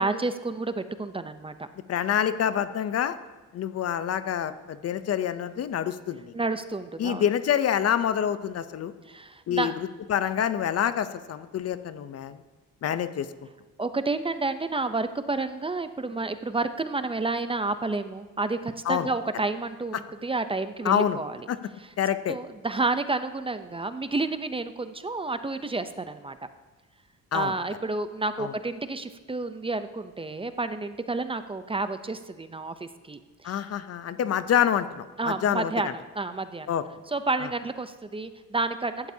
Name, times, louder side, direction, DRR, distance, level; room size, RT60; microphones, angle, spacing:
voice 1, 0.0-1.7 6.3-7.2 9.1-9.7 13.8-21.4 22.3-26.4 27.3-33.6 35.2-35.9 36.2-36.7 37.1-39.1, right 3 dB, 20° right, 10 dB, 0.6 m, -30 dB
voice 2, 1.9-3.2 3.5-6.3 7.0-8.9 9.5-12.4 12.8-13.3 18.9-19.1 19.9-20.0 20.8-21.2 21.5-21.6 22.0-22.4 27.3-27.5 28.4-28.5 33.4-35.9 36.7-36.8 37.4-37.5, left 9 dB, 55° left, 12 dB, 0.6 m, -27 dB
15.5 x 12.0 x 2.8 m, 1.3 s
cardioid pair, 90°, 30 cm